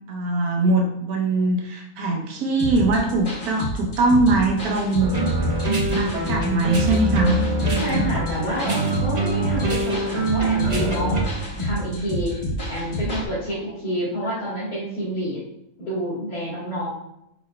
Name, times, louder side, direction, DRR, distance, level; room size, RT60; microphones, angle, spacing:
voice 1, 0.1-5.1 6.0-7.4 11.6-12.1, right 2 dB, 85° right, 0 dB, 1.3 m, -22 dB
sound 1, 2.6-13.2, equal, 25° left, 1.0 m, -29 dB
sound 2, 5.0-11.2, right 2 dB, 35° right, 0.8 m, -24 dB
voice 2, 7.7-11.3 11.6-12.4 12.7-15.4 15.8-16.9, equal, 85° left, -8 dB, 1.9 m, -28 dB
5.2 x 4.6 x 2.2 m, 0.82 s
omnidirectional pair, 1.6 m